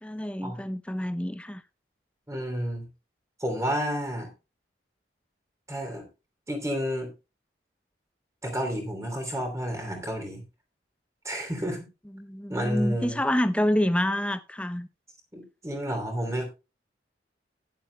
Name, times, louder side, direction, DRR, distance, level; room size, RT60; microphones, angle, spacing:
voice 1, 0.0-1.6 12.1-14.9, left 1 dB, 5° left, 0.6 m, -27 dB
voice 2, 2.3-2.9 3.4-4.3 5.7-6.0 6.5-7.1 8.4-10.4 11.2-11.9 12.5-13.2 15.3-16.4, equal, 15° right, 2.9 m, -30 dB
15.5 x 10.5 x 2.2 m
head